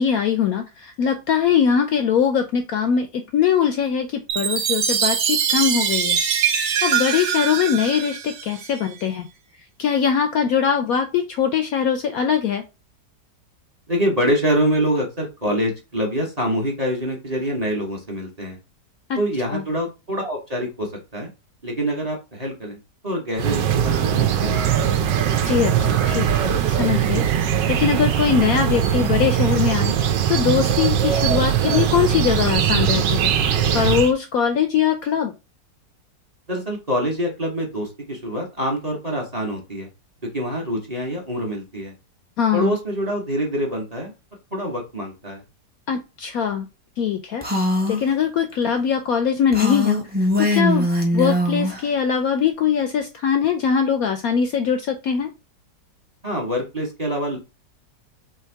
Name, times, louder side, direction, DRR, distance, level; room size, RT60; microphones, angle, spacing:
voice 1, 0.0-6.2 6.8-9.3 9.8-12.6 19.1-19.2 19.5-19.6 25.4-27.2 27.7-29.9 30.3-33.3 33.7-35.3 42.4-42.8 45.9-46.7 47.0-47.4 47.9-50.0 50.4-50.9 51.1-55.3, left 7 dB, 70° left, 7 dB, 0.9 m, -21 dB
Chime, 4.3-8.8, right 8 dB, 60° right, 0.9 m, -22 dB
voice 2, 13.9-18.6 19.2-21.3 21.6-22.8 23.0-24.6 36.5-39.9 40.2-41.9 42.5-44.1 44.5-45.4 56.2-57.4, equal, 30° right, 0 dB, 0.9 m, -25 dB
sound 1, 23.4-34.1, right 9 dB, 80° right, 1.3 m, -20 dB
Female speech woman speaking, 47.4-48.0 49.5-51.8, left 1 dB, 10° right, 0.5 m, -21 dB
3.5 x 3.1 x 4.5 m, 0.27 s
omnidirectional pair, 1.9 m